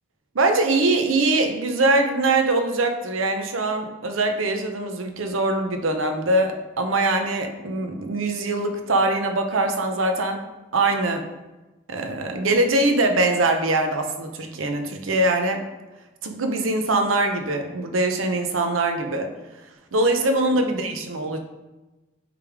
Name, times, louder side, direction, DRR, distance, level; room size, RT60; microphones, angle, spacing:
voice 1, 0.3-10.4 10.7-11.2 11.9-15.7 16.2-19.3 19.9-21.4, right 2 dB, 85° right, 5 dB, 0.8 m, -22 dB
8.2 x 3.4 x 3.5 m, 1.1 s
head